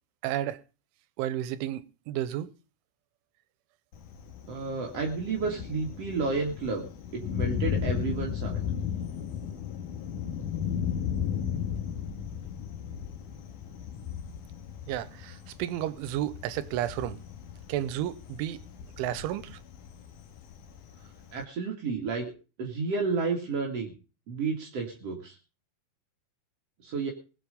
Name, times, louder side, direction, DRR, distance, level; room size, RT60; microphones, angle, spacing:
voice 1, 0.2-0.6 1.2-2.5 14.9-17.2 17.7-18.6 19.0-19.6, right 12 dB, 90° right, 3.3 m, -32 dB
Thunder, 3.9-21.4, left 8 dB, 60° left, 2.3 m, -35 dB
voice 2, 4.5-6.9 7.1-8.6 21.3-22.3 22.6-23.9 24.3-25.4 26.8-27.1, right 4 dB, 45° right, 2.2 m, -31 dB
20.5 x 8.0 x 5.2 m
omnidirectional pair, 5.4 m